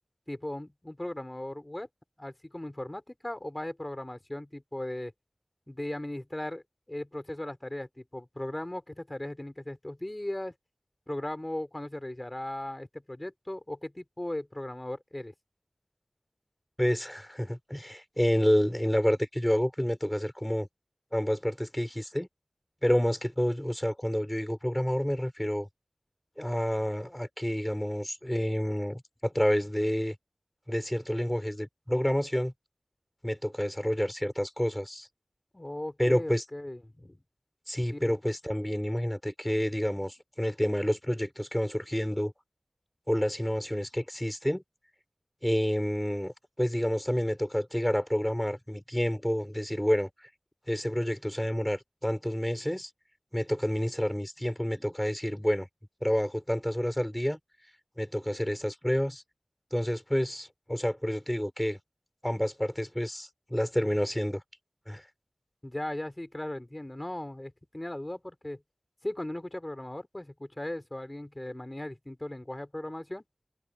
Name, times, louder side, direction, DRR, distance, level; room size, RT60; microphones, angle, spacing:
voice 1, 0.3-1.9 2.2-5.1 5.7-10.5 11.1-15.3 35.5-37.2 37.9-38.2 65.6-68.6 69.0-73.2, left 1 dB, 30° left, 4.6 m, -37 dB
voice 2, 16.8-20.7 21.1-22.3 22.8-25.7 26.4-30.2 30.7-32.5 33.2-35.1 36.0-36.4 37.7-42.3 43.1-44.6 45.4-50.3 50.7-52.9 53.3-55.7 56.0-57.4 58.0-59.2 59.7-61.8 62.2-64.4 64.9-65.0, equal, 10° left, 3.0 m, -29 dB
wide cardioid pair, 45°, 0 cm